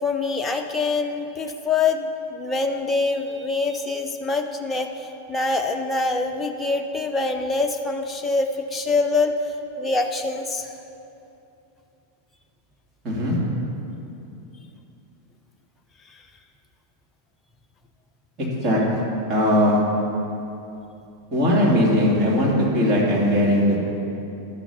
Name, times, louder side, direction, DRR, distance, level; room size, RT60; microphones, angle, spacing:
voice 1, 0.0-10.7 16.1-16.2, left 3 dB, 15° left, 3 dB, 0.7 m, -25 dB
voice 2, 13.0-13.4 18.4-19.0 19.3-19.8 21.3-23.8, left 1 dB, 35° right, -5 dB, 2.8 m, -19 dB
12.0 x 6.2 x 5.7 m, 2.8 s
figure-of-eight pair, 90°, 0 cm